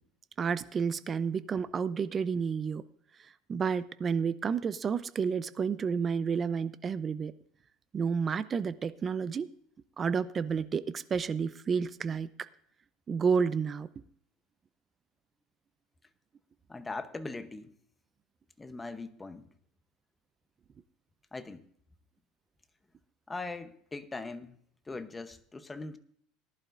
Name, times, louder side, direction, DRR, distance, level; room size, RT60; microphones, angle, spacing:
voice 1, 0.4-2.8 3.5-7.3 7.9-9.5 10.0-12.3 13.1-13.9, right 6 dB, 25° right, 15 dB, 0.6 m, -30 dB
voice 2, 16.7-17.7 18.6-19.5 21.3-21.6 23.3-24.6 24.9-26.0, left 3 dB, 15° left, 10 dB, 0.9 m, -40 dB
19.0 x 11.0 x 2.6 m, 0.67 s
supercardioid pair, 135°, 0 cm